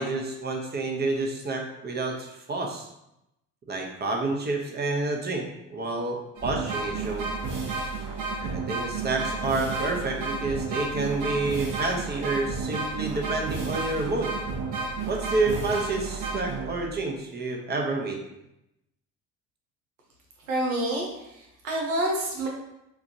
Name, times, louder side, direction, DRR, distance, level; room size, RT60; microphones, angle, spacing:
voice 1, 0.0-2.9 3.7-7.3 8.4-14.3 15.1-18.2, right 3 dB, 25° right, 2 dB, 0.8 m, -29 dB
sound 1, 6.4-17.0, right 4 dB, 50° right, 1.2 m, -31 dB
voice 2, 20.5-22.5, right 1 dB, 90° right, -1 dB, 0.8 m, -28 dB
4.6 x 2.4 x 2.7 m, 0.84 s
hypercardioid pair, 60°, 40 cm